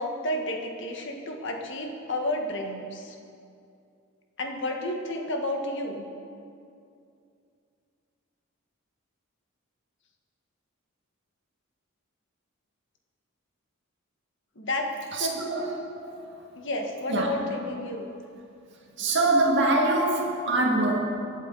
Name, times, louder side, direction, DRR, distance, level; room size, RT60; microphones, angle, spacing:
voice 1, 0.0-3.1 4.4-6.0 14.5-14.9 15.2-15.4 16.6-18.1, left 1 dB, 60° left, 2 dB, 1.5 m, -31 dB
voice 2, 15.1-16.5 17.1-17.3 18.8-21.0, right 2 dB, 55° right, -1 dB, 2.0 m, -25 dB
22.5 x 8.2 x 4.1 m, 2.5 s
head